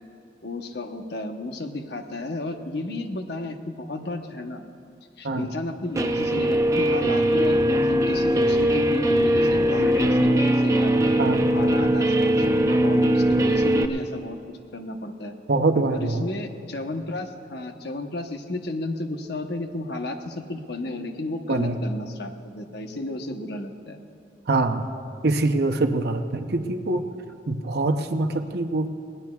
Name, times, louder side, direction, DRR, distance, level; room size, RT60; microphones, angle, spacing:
voice 1, 0.4-4.6 5.2-10.9 11.5-14.4 14.7-15.3 15.9-24.0, left 2 dB, 60° left, 5 dB, 1.0 m, -33 dB
Guitar, 5.9-13.8, right 1 dB, 15° right, 0.5 m, -20 dB
voice 2, 11.2-11.5 15.5-16.2 21.5-21.8 24.5-24.9 25.2-27.0 27.5-28.9, right 2 dB, 60° right, 6 dB, 0.8 m, -24 dB
22.5 x 18.0 x 2.4 m, 2.3 s
head